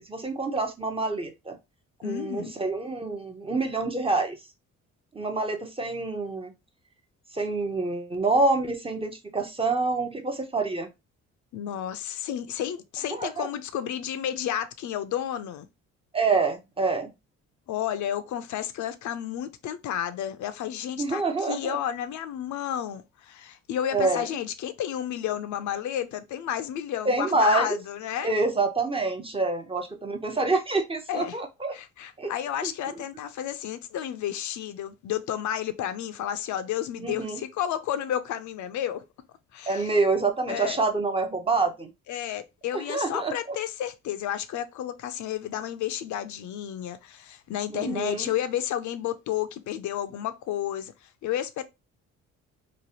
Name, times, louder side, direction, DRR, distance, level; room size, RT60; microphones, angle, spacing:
voice 1, 0.0-1.6 2.0-4.4 5.1-6.5 7.3-10.9 13.1-13.5 16.1-17.1 21.0-21.8 23.9-24.3 27.0-27.8 28.2-31.7 32.2-32.3 32.6-32.7 37.0-37.4 39.7-41.9 42.7-43.6 47.7-48.3, right 3 dB, 20° right, 0.6 m, -27 dB
voice 2, 2.0-2.5 11.5-15.7 17.7-28.3 31.1-31.4 31.7-39.0 39.5-39.9 40.5-40.8 42.1-50.9 51.2-51.6, left 10 dB, 75° left, 0.5 m, -31 dB
3.1 x 2.4 x 2.7 m
cardioid pair, 90°, 30 cm